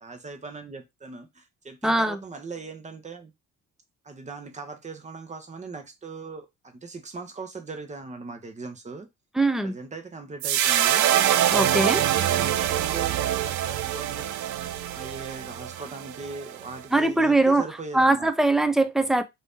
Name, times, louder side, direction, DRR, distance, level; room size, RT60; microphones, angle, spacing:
voice 1, 0.0-3.3 4.0-9.1 9.6-11.1 11.5-14.3 14.9-18.3, right 4 dB, 25° right, 0.8 m, -39 dB
voice 2, 1.8-2.2 9.4-9.7 11.5-12.1 16.9-17.6 17.9-19.2, right 2 dB, ahead, 0.4 m, -21 dB
sound 1, 10.4-16.8, right 11 dB, 75° right, 0.5 m, -25 dB
2.9 x 2.7 x 3.5 m
cardioid pair, 90°, 30 cm